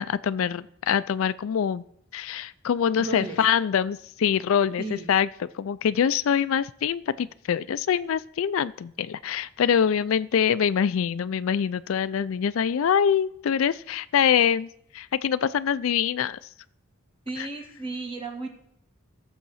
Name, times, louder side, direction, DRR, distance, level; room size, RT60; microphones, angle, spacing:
voice 1, 0.0-1.8 2.1-14.7 14.9-16.4 17.4-17.5, left 8 dB, 70° left, 16 dB, 0.4 m, -24 dB
voice 2, 3.0-3.4 4.8-5.1 17.3-18.5, right 3 dB, 25° right, 3 dB, 2.0 m, -34 dB
15.0 x 7.2 x 5.6 m, 0.73 s
head